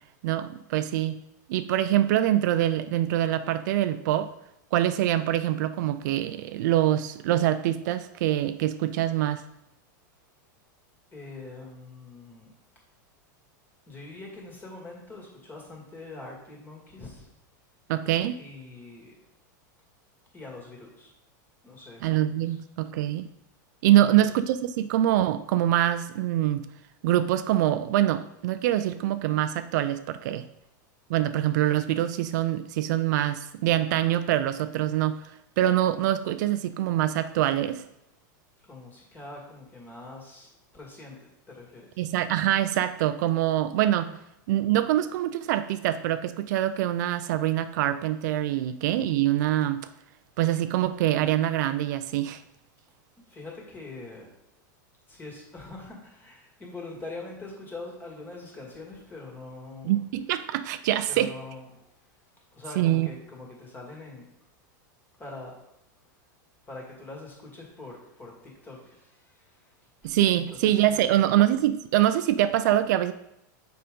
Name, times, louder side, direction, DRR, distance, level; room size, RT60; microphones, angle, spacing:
voice 1, 0.2-1.2 1.5-4.3 4.7-9.4 17.9-18.4 22.0-23.3 23.8-26.7 27.0-30.4 31.1-37.8 42.0-44.1 44.5-49.9 50.4-52.4 59.8-61.3 62.8-63.1 70.0-73.1, right 13 dB, 65° right, 11 dB, 0.4 m, -24 dB
voice 2, 11.1-12.5 13.9-17.3 18.4-19.2 20.3-21.1 21.6-22.1 22.4-22.6 24.0-24.3 38.6-42.0 53.3-54.3 55.1-60.0 61.1-61.9 62.5-64.3 65.2-65.6 66.7-69.8 70.0-71.4, left 2 dB, 20° left, -1 dB, 2.1 m, -43 dB
6.7 x 5.1 x 3.7 m, 0.82 s
supercardioid pair, 135°, 10 cm